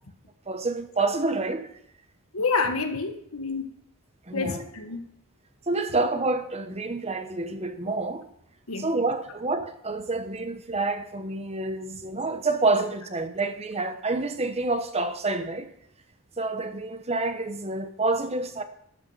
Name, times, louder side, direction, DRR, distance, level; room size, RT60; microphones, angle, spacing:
voice 1, 0.5-1.7 4.3-4.7 5.7-8.3 8.8-15.7 16.4-18.6, right 3 dB, 30° right, 1.0 m, -28 dB
voice 2, 2.3-3.7 4.3-5.1 8.7-8.9, left 4 dB, 70° left, 1.5 m, -28 dB
12.5 x 8.9 x 5.6 m
head